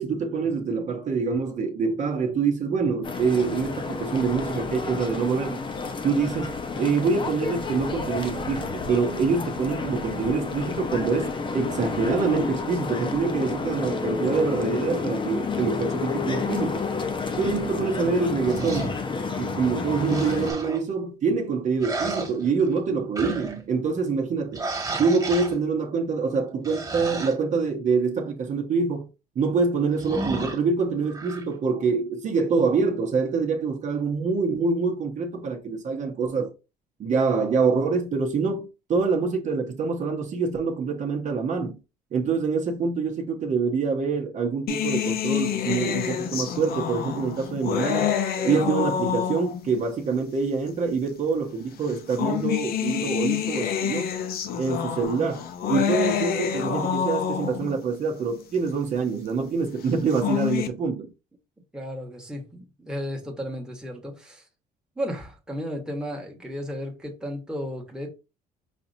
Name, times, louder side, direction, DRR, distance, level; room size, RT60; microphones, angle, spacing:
voice 1, 0.0-5.6 6.0-16.8 17.4-18.9 19.3-24.6 25.0-29.1 29.4-36.5 37.0-41.8 42.1-48.1 48.4-54.1 54.6-61.1, right 5 dB, 45° right, 0.9 m, -25 dB
sound 1, 3.0-20.5, left 4 dB, 30° left, 0.8 m, -30 dB
voice 2, 17.5-17.8 61.7-64.5 65.0-68.1, equal, 5° right, 1.2 m, -34 dB
sound 2, 18.4-19.0 20.0-20.8 21.8-22.8 23.1-23.6 24.5-25.6 26.6-27.3 30.0-30.6 31.1-31.4, right 2 dB, 20° right, 1.6 m, -32 dB
sound 3, 44.7-49.8 50.7-50.8 51.9-57.8 59.9-60.7, left 9 dB, 65° left, 0.7 m, -27 dB
5.2 x 2.8 x 2.7 m
cardioid pair, 110°, 17 cm